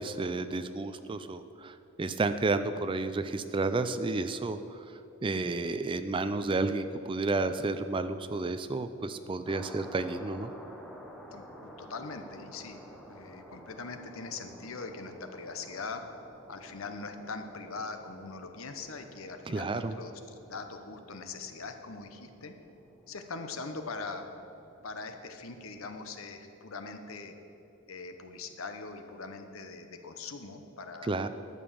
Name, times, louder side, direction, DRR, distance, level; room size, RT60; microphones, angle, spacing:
voice 1, 0.0-4.6 5.2-10.5 19.5-20.0 31.1-31.3, right 3 dB, 25° right, 11 dB, 0.3 m, -31 dB
sound 1, 9.4-26.0, equal, ahead, 0.9 m, -52 dB
voice 2, 11.3-12.8 13.1-16.0 16.5-22.5 23.1-24.3 24.8-27.4 27.9-31.3, left 4 dB, 65° left, 7 dB, 0.9 m, -42 dB
11.5 x 7.1 x 7.0 m, 2.9 s
head